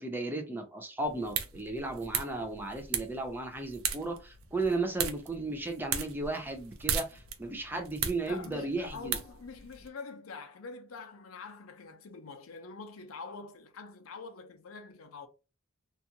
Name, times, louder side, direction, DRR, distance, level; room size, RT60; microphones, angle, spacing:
voice 1, 0.0-9.2, right 2 dB, 10° right, 0.4 m, -35 dB
sound 1, 1.0-9.9, right 7 dB, 90° right, 0.5 m, -38 dB
voice 2, 8.3-15.3, left 4 dB, 90° left, 0.5 m, -45 dB
2.6 x 2.3 x 2.7 m
head